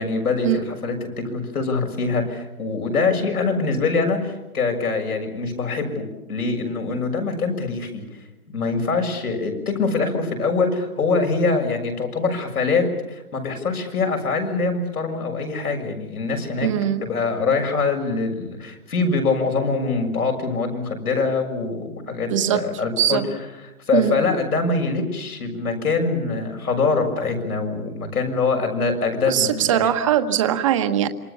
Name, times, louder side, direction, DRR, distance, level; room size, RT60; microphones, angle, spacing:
voice 1, 0.0-8.0 8.5-16.7 17.0-23.2 23.9-29.8, left 4 dB, 85° left, 3 dB, 7.0 m, -24 dB
voice 2, 16.6-17.0 22.3-22.6 23.0-23.2 23.9-24.2 29.3-31.1, right 10 dB, 20° right, 8 dB, 1.2 m, -20 dB
27.5 x 25.0 x 7.1 m, 1.0 s
hypercardioid pair, 165°, 44 cm